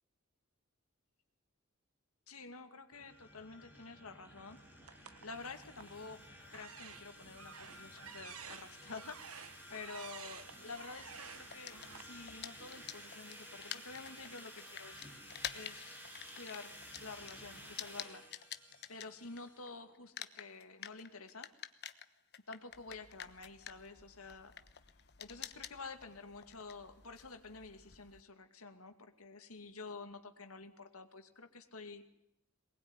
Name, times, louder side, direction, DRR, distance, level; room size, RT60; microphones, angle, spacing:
voice 1, 2.3-4.6 5.2-6.2 6.5-15.1 15.5-16.0 16.3-18.3 18.9-21.5 22.5-24.5 25.2-32.0, left 4 dB, 80° left, 7 dB, 2.5 m, -50 dB
sound 1, 2.9-19.7, equal, 10° right, 7.4 m, -54 dB
sound 2, 4.8-6.0 6.5-12.0, right 7 dB, 80° right, 1.5 m, -52 dB
sound 3, 11.5-19.7 19.9-28.2, left 10 dB, 50° left, 1.2 m, -48 dB
23.0 x 20.5 x 9.8 m, 0.83 s
head